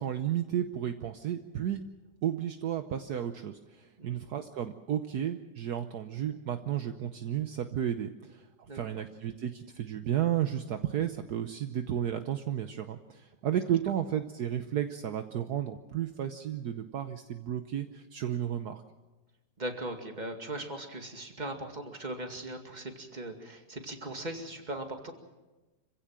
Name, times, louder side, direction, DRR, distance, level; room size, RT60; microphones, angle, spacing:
voice 1, 0.0-1.8 2.2-8.5 8.7-18.8, right 10 dB, 70° right, 8 dB, 1.4 m, -33 dB
voice 2, 8.7-9.0 19.6-25.1, right 1 dB, 25° right, 4 dB, 2.3 m, -39 dB
26.0 x 16.0 x 7.5 m, 1.1 s
omnidirectional pair, 1.9 m